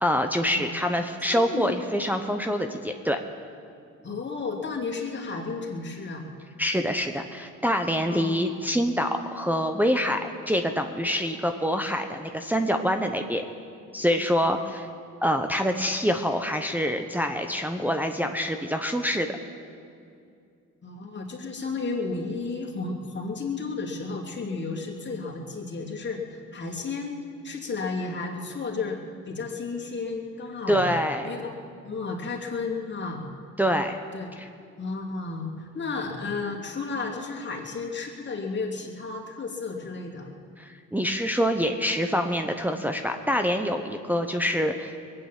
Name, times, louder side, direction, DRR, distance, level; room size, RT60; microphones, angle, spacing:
voice 1, 0.0-3.2 6.6-13.5 13.9-14.9 15.2-19.4 30.7-31.3 33.6-34.0 34.4-34.5 40.6-44.9, equal, 5° right, 4 dB, 0.9 m, -26 dB
voice 2, 1.3-1.9 4.0-6.3 8.1-8.3 20.8-27.2 27.4-29.0 29.3-30.8 31.2-31.5 31.8-33.2 34.1-34.3 34.8-40.3, left 4 dB, 40° left, -1 dB, 2.8 m, -33 dB
21.0 x 9.0 x 7.5 m, 2.4 s
cardioid pair, 90°, 30 cm